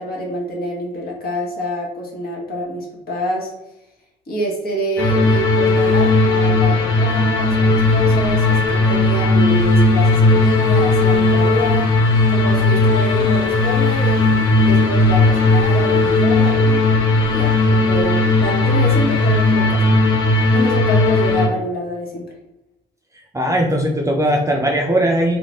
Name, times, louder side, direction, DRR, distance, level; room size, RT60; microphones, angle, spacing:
voice 1, 0.0-3.5 4.3-11.9 12.3-17.0 17.3-20.1 20.5-22.3 23.6-23.7, equal, 50° left, -2 dB, 1.2 m, -27 dB
sound 1, 5.0-21.5, left 2 dB, 80° left, 0.9 m, -16 dB
voice 2, 23.3-25.4, right 1 dB, 15° right, 1 dB, 0.4 m, -18 dB
2.5 x 2.4 x 3.2 m, 0.92 s
cardioid pair, 90°, 20 cm